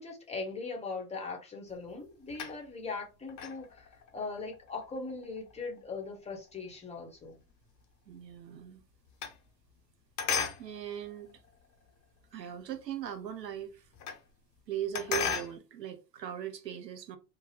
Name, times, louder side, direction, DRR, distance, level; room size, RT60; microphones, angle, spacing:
voice 1, 0.0-7.4, left 4 dB, 15° left, 0.9 m, -40 dB
sound 1, 1.7-2.9 3.3-7.8 8.1-9.9 10.2-12.2 12.7-12.8 13.0-13.1 13.3-14.3 14.6-15.6, left 6 dB, 35° left, 0.8 m, -38 dB
voice 2, 8.1-8.8 10.6-11.4 12.3-13.9 14.7-17.2, right 10 dB, 90° right, 0.7 m, -39 dB
2.7 x 2.1 x 3.2 m
hypercardioid pair, 90°, 48 cm